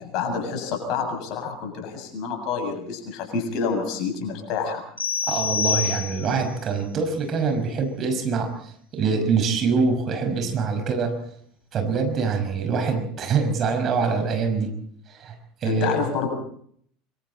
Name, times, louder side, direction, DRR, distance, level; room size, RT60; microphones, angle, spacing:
voice 1, 0.0-4.8 15.6-16.3, left 5 dB, 50° left, 4 dB, 7.2 m, -28 dB
sound 1, 5.0-6.5, left 6 dB, 85° left, 4.7 m, -26 dB
voice 2, 5.3-11.2 11.7-14.7 15.1-15.4 15.6-16.0, right 5 dB, 40° right, 6 dB, 5.8 m, -24 dB
25.0 x 25.0 x 4.3 m, 0.63 s
figure-of-eight pair, 75°, 0 cm